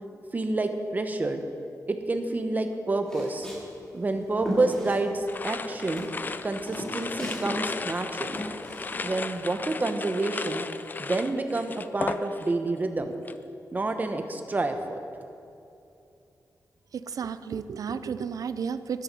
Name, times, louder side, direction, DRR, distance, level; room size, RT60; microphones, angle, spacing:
voice 1, 0.3-1.4 1.9-3.5 3.9-6.1 6.4-8.4 9.0-10.6 11.0-13.2 13.7-15.0, right 2 dB, 25° right, 6 dB, 1.0 m, -28 dB
Walk footsteps, 3.0-5.5 5.7-7.6 7.9-9.4, equal, 10° left, 2.8 m, -36 dB
sound 1, 5.3-12.7 13.0-13.4, left 4 dB, 30° left, 0.4 m, -35 dB
voice 2, 16.9-19.0, right 6 dB, 65° right, 13 dB, 0.5 m, -32 dB
13.5 x 11.5 x 5.5 m, 2.7 s
wide cardioid pair, 160°, 6 cm